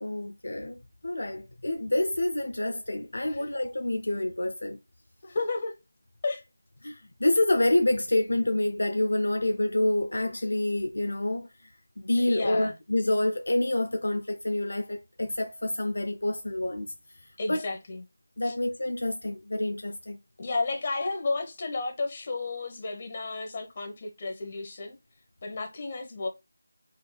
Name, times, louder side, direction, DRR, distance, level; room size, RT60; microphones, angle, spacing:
voice 1, 0.0-4.8 6.8-11.5 12.0-16.9 17.5-17.6 18.4-20.2, left 1 dB, 80° left, 0.6 m, -27 dB
voice 2, 5.2-5.8 6.2-6.4 12.2-12.7 17.4-18.0 18.4-18.5 20.4-25.0 25.4-26.3, left 3 dB, 30° left, 1.1 m, -32 dB
4.8 x 3.6 x 2.3 m
figure-of-eight pair, 170°, 0 cm